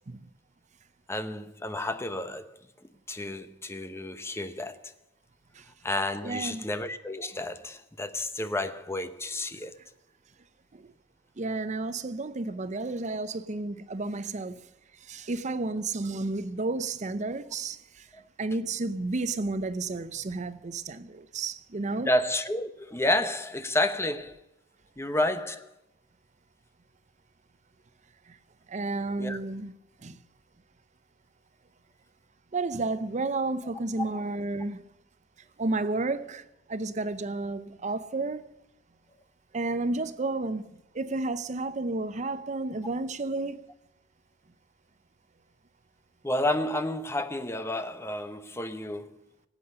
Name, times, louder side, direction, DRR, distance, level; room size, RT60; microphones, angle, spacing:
voice 1, 1.1-2.5 3.1-4.9 5.8-9.7 22.1-24.4 25.0-25.7 29.2-29.4 46.2-49.2, left 1 dB, 15° left, 0.9 m, -30 dB
voice 2, 6.2-6.6 10.7-10.9 11.4-14.7 15.0-22.1 28.3-28.4 28.7-29.7 30.0-30.2 32.5-34.8 35.6-38.5 39.5-43.7, right 3 dB, 40° right, 0.6 m, -32 dB
18.5 x 8.7 x 6.6 m
head